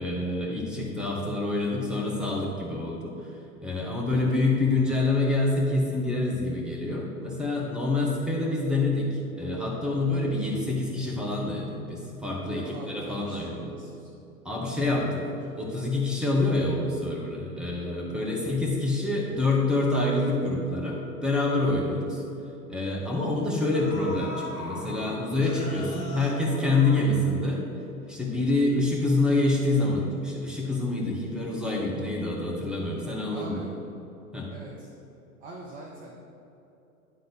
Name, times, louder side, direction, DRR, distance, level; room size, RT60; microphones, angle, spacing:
voice 1, 0.0-3.1 3.6-13.7 14.4-15.3 15.5-22.2 22.7-27.6 28.1-33.7 34.3-34.5, left 2 dB, ahead, -3 dB, 1.2 m, -27 dB
voice 2, 12.4-14.1 18.3-18.8 33.3-33.7 34.5-34.9 35.4-36.2, right 2 dB, 20° right, -1 dB, 0.6 m, -45 dB
sound 1, 23.7-27.7 28.0-28.1, left 2 dB, 65° left, 1.6 m, -40 dB
10.5 x 3.8 x 5.4 m, 2.9 s
figure-of-eight pair, 110°, 45 cm